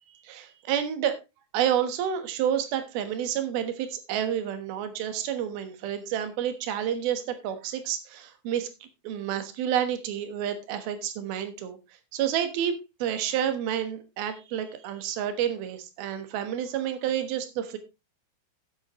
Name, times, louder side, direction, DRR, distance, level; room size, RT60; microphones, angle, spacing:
voice 1, 0.2-1.2 1.5-8.7 9.0-11.8 12.1-17.8, right 9 dB, 85° right, 8 dB, 3.2 m, -29 dB
15.5 x 8.0 x 3.0 m, 0.25 s
omnidirectional pair, 4.3 m